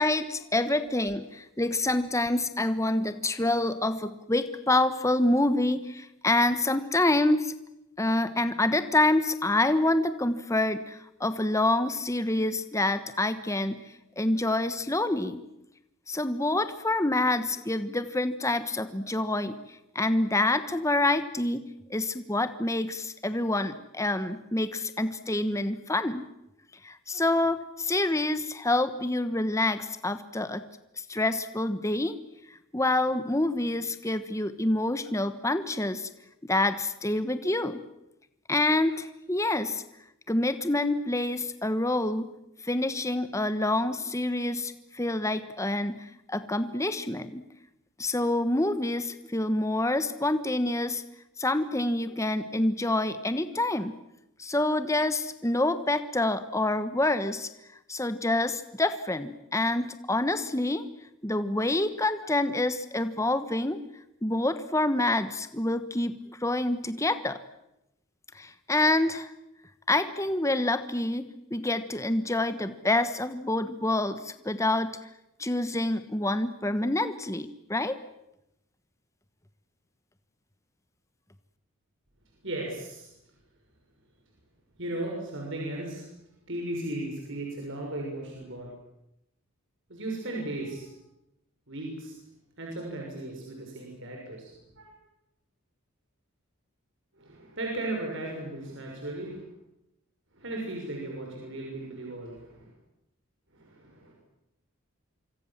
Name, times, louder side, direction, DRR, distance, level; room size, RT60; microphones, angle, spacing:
voice 1, 0.0-7.5 8.0-13.8 14.2-15.4 16.1-19.6 19.9-21.6 21.9-26.3 26.8-30.6 31.0-32.2 32.7-36.1 36.4-37.8 38.5-39.8 40.3-42.3 42.6-47.4 48.0-51.0 51.4-54.0 54.4-57.5 57.9-60.8 61.2-63.8 64.2-67.4 68.3-69.3 69.9-75.0 75.4-78.0, left 2 dB, 15° left, 11 dB, 1.1 m, -27 dB
voice 2, 82.4-83.1 84.8-86.1 86.5-88.7 89.9-90.9 91.7-92.2 92.6-94.9 97.2-99.5 100.3-102.7 103.5-104.1, right 1 dB, 55° right, -1 dB, 6.3 m, -36 dB
26.5 x 25.5 x 7.4 m, 0.86 s
head